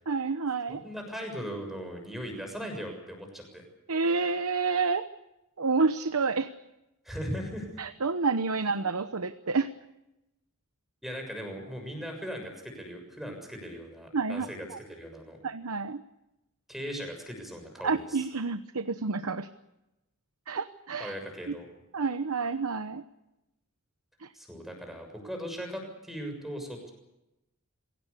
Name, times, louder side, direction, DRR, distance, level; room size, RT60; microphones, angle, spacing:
voice 1, 0.1-0.8 3.9-5.1 5.6-6.5 7.8-9.7 14.1-14.8 15.4-16.0 17.8-19.5 20.5-21.1 21.5-21.6 21.9-23.0 24.2-24.3, right 4 dB, 85° right, 10 dB, 0.9 m, -29 dB
voice 2, 0.7-3.6 7.0-7.7 11.0-15.4 16.7-18.2 21.0-21.7 24.3-26.9, equal, ahead, 3 dB, 6.9 m, -38 dB
27.0 x 17.5 x 8.4 m, 0.94 s
head